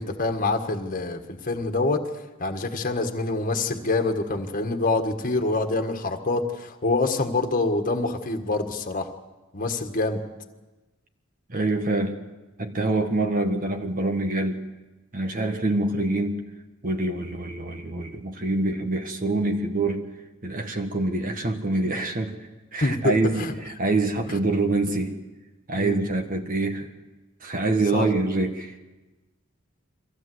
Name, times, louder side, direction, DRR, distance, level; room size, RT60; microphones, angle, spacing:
voice 1, 0.0-2.0 2.4-9.1 9.5-10.2 22.8-23.5 25.8-26.0 27.9-28.0, left 2 dB, 40° left, 5 dB, 1.7 m, -26 dB
voice 2, 11.5-12.2 12.6-14.6 15.1-16.4 16.8-20.0 20.4-25.1 25.7-26.9 27.4-28.7, right 2 dB, 40° right, 4 dB, 1.5 m, -25 dB
23.5 x 16.0 x 7.9 m, 1.1 s
head